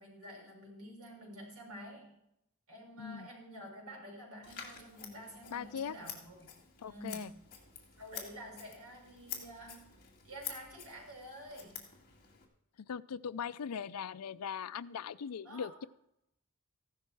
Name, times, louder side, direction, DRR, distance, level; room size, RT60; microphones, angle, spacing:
voice 1, 0.0-2.2 2.7-6.5 6.9-7.4 8.0-9.9 10.2-11.9 15.4-15.7, equal, 75° right, -1 dB, 6.8 m, -49 dB
Scissors, 4.4-12.5, left 8 dB, 40° left, 2.3 m, -49 dB
voice 2, 5.5-5.9 6.8-7.3 12.9-15.8, left 7 dB, 85° left, 17 dB, 0.5 m, -40 dB
15.0 x 12.0 x 4.7 m, 0.81 s
head